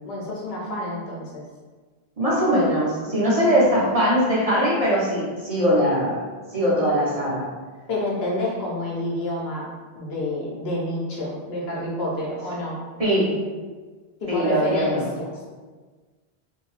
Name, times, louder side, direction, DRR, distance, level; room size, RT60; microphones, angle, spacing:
voice 1, 0.0-1.4 7.9-12.8 14.2-15.4, left 1 dB, 75° left, -4 dB, 1.0 m, -28 dB
voice 2, 2.2-6.2 6.5-7.5 13.0-13.4 14.3-15.1, equal, 40° right, -8 dB, 0.8 m, -21 dB
2.6 x 2.2 x 3.1 m, 1.4 s
omnidirectional pair, 1.0 m